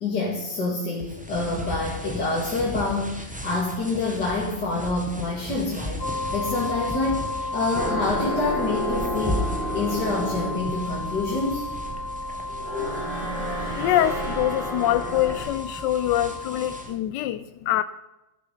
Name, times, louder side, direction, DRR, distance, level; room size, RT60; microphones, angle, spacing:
voice 1, 0.0-11.7, left 3 dB, 55° left, -4 dB, 2.9 m, -27 dB
sound 1, 1.0-17.0, left 1 dB, 5° right, 1.3 m, -37 dB
sound 2, 6.0-16.8, left 2 dB, 35° left, 1.5 m, -33 dB
sound 3, 7.7-15.4, right 1 dB, 55° right, 4.6 m, -32 dB
voice 2, 13.1-17.8, left 13 dB, 75° left, 12 dB, 1.1 m, -25 dB
13.5 x 9.8 x 5.5 m, 0.95 s
omnidirectional pair, 2.1 m